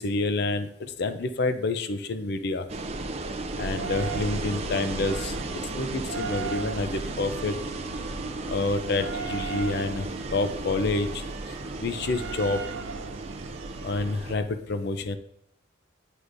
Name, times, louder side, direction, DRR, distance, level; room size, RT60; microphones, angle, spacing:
voice 1, 0.0-2.7 3.6-5.3 5.8-7.6 8.5-10.0 10.3-11.2 11.8-12.6 13.8-15.2, left 3 dB, 60° left, 10 dB, 0.5 m, -28 dB
sound 1, 2.7-14.4, right 2 dB, 35° right, 0.5 m, -35 dB
sound 2, 3.5-14.4, right 5 dB, 85° right, 0.5 m, -38 dB
9.6 x 4.9 x 2.6 m, 0.74 s
head